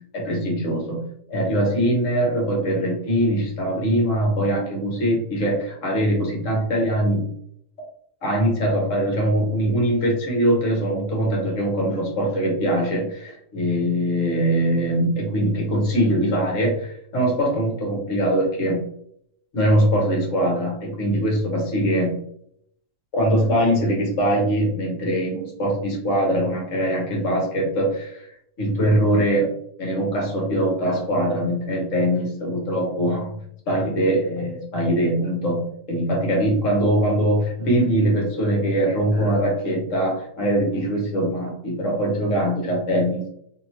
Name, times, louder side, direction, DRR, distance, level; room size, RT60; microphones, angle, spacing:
voice 1, 0.1-7.3 8.2-18.8 19.5-22.2 23.1-28.3 28.6-29.5 29.8-33.3 33.7-43.3, right 1 dB, 55° left, -1 dB, 1.3 m, -22 dB
2.9 x 2.9 x 2.8 m, 0.70 s
omnidirectional pair, 1.6 m